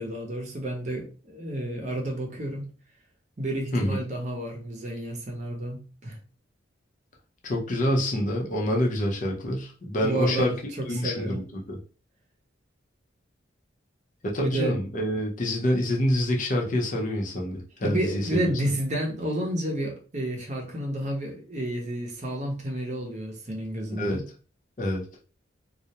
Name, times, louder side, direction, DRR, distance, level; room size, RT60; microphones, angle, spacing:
voice 1, 0.0-2.7 3.4-6.2 10.0-11.4 14.4-14.7 17.8-24.2, right 1 dB, 40° right, 0 dB, 0.6 m, -30 dB
voice 2, 7.4-10.5 10.8-11.8 14.2-18.4 23.9-24.2 24.8-25.0, left 1 dB, 40° left, 0 dB, 0.6 m, -26 dB
2.3 x 2.1 x 2.8 m, 0.36 s
head